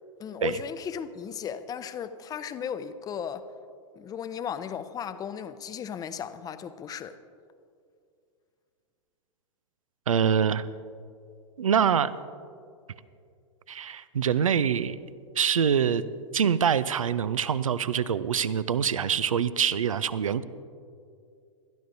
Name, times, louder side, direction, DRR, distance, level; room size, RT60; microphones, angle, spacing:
voice 1, 0.2-3.5 4.0-7.2, left 8 dB, 20° left, 0.6 m, -35 dB
voice 2, 10.1-10.7 11.6-12.1 13.7-15.0 15.4-16.0 16.3-20.4, right 7 dB, 85° right, 0.5 m, -25 dB
21.0 x 12.5 x 2.7 m
hypercardioid pair, 100°, 17 cm